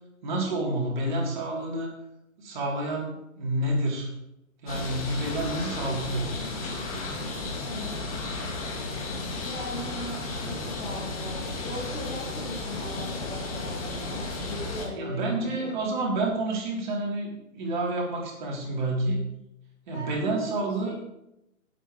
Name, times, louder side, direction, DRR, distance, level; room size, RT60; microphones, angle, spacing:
voice 1, 0.2-1.9 2.4-4.1 4.6-6.4 14.9-19.3 19.9-21.0, right 2 dB, 35° right, -2 dB, 3.7 m, -29 dB
sound 1, 4.7-14.9, left 2 dB, 25° left, 2.1 m, -33 dB
voice 2, 7.6-8.1 9.4-15.8 19.9-20.9, equal, 10° left, -5 dB, 1.4 m, -38 dB
20.5 x 8.9 x 3.3 m, 0.84 s
hypercardioid pair, 165°, 42 cm